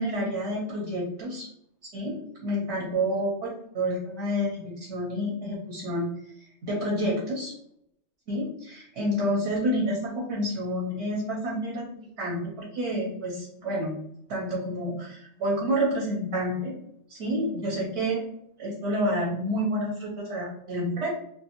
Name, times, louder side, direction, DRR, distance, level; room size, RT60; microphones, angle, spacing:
voice 1, 0.0-1.5 1.9-3.3 3.7-6.1 6.6-7.5 8.3-13.9 14.3-16.7 17.1-18.2 18.6-21.1, equal, 60° right, -4 dB, 0.9 m, -29 dB
2.5 x 2.4 x 2.9 m, 0.73 s
omnidirectional pair, 1.4 m